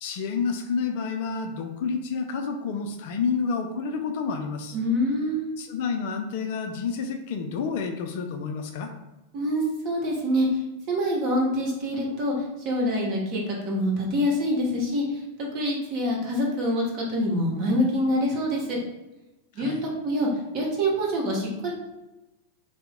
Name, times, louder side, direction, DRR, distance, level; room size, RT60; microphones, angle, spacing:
voice 1, 0.0-4.8 5.6-8.9 19.6-19.8, left 5 dB, 50° left, 5 dB, 0.4 m, -29 dB
voice 2, 4.7-5.5 9.3-10.6 10.9-12.3 12.6-18.8 19.5-19.7 20.0-20.3 20.5-21.7, equal, 40° right, -2 dB, 1.0 m, -25 dB
2.7 x 2.1 x 3.6 m, 1.0 s
figure-of-eight pair, 90°, 0 cm